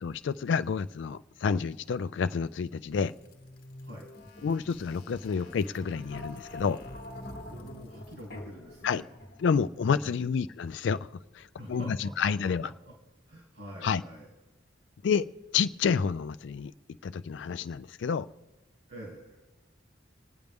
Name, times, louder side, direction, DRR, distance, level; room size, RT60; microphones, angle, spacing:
voice 1, 0.0-3.1 4.4-6.8 8.8-9.0 9.4-11.1 11.3-12.7 13.8-14.0 15.0-15.3 15.5-16.7 17.0-18.3, left 6 dB, 70° left, 13 dB, 0.3 m, -29 dB
sound 1, 2.9-9.7, left 1 dB, 50° left, 1.1 m, -46 dB
voice 2, 7.4-9.1 9.9-10.3 11.6-12.9 13.3-14.3 18.9-19.4, equal, 70° right, -2 dB, 2.6 m, -46 dB
27.0 x 9.3 x 3.5 m, 1.1 s
head